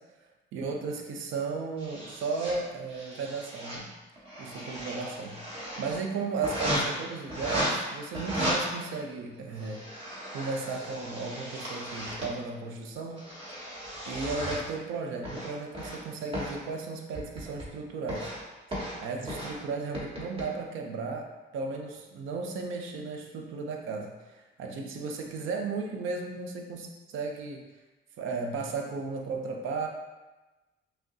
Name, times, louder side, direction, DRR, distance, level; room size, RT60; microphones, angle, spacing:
voice 1, 0.5-3.9 4.4-9.8 10.3-13.2 14.1-18.3 19.0-27.6 28.2-29.9, right 4 dB, 85° right, 2 dB, 0.6 m, -35 dB
sound 1, 1.8-2.5 2.9-3.8 4.2-6.0 6.4-6.8 7.3-7.7 8.1-8.6 9.3-12.3 12.9-14.6 15.2-16.0 16.3-16.5 17.1-17.7 18.1-18.4 18.7-19.0 19.3-19.5 19.9-20.4, equal, 30° right, 1.4 m, -35 dB
5.8 x 2.2 x 2.6 m, 1.1 s
cardioid pair, 90°, 20 cm